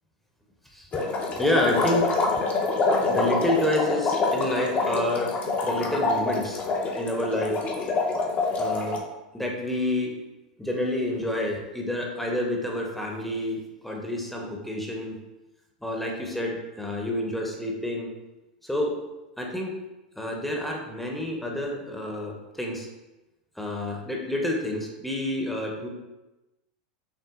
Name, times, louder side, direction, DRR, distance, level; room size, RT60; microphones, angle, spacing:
voice 1, 0.7-1.0 1.4-2.3 3.1-5.3 5.6-6.6 7.0-7.6 8.6-9.0 9.3-10.1 10.6-15.2 15.8-18.1 18.6-18.9 19.4-19.7 20.2-22.9 23.6-25.9, left 1 dB, 5° left, 0 dB, 0.9 m, -28 dB
sound 1, 0.9-9.0, left 3 dB, 30° left, 0.9 m, -26 dB
6.0 x 2.3 x 3.7 m, 1.0 s
hypercardioid pair, 100°, 5 cm